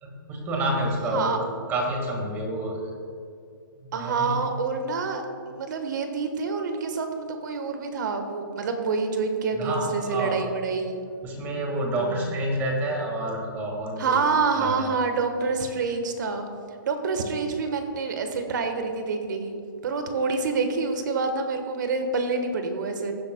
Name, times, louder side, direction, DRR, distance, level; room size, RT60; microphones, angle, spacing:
voice 1, 0.0-1.3 1.7-2.8 3.8-4.4 9.5-10.4 11.2-14.2 14.6-14.9, right 1 dB, 15° right, 1 dB, 1.7 m, -28 dB
voice 2, 3.9-11.0 11.9-12.3 14.0-16.5 16.8-19.6 19.8-23.1, right 4 dB, 55° right, 6 dB, 1.3 m, -27 dB
15.5 x 10.0 x 2.2 m, 2.3 s
hypercardioid pair, 160°, 12 cm